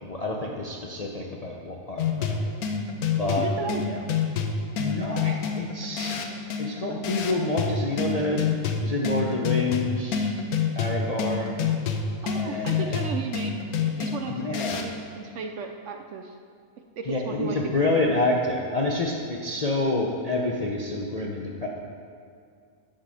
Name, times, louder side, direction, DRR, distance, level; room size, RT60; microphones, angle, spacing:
voice 1, 0.0-2.4 3.2-3.5 3.8-4.0 4.8-6.1 6.6-8.4 8.7-10.3 10.8-11.6 12.4-13.0 14.3-14.8 17.1-21.7, left 2 dB, 45° left, -3 dB, 0.5 m, -28 dB
sound 1, 2.0-15.0, left 6 dB, 85° left, 1.2 m, -28 dB
voice 2, 3.4-4.1 12.2-13.6 14.0-14.3 14.7-16.4 17.0-17.7, right 5 dB, 65° right, 4 dB, 0.8 m, -34 dB
10.0 x 4.0 x 6.2 m, 2.3 s
omnidirectional pair, 1.5 m